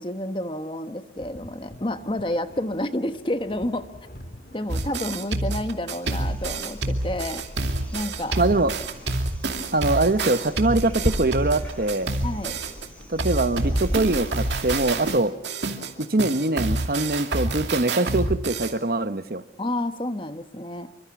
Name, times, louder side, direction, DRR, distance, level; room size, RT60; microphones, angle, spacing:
voice 1, 0.0-3.9 4.5-7.4 7.9-8.4 12.2-12.5 19.6-20.9, left 1 dB, 30° left, 9 dB, 1.2 m, -29 dB
sound 1, 1.2-15.4, equal, 55° left, 4.3 m, -49 dB
sound 2, 4.7-12.9 13.2-18.7, right 2 dB, 85° right, 2.4 m, -28 dB
sound 3, 6.0-15.1, equal, 10° left, 5.8 m, -36 dB
voice 2, 8.4-8.7 9.7-12.1 13.1-15.3 16.1-19.4, right 2 dB, 55° right, 12 dB, 0.9 m, -23 dB
27.5 x 24.5 x 6.0 m, 0.76 s
head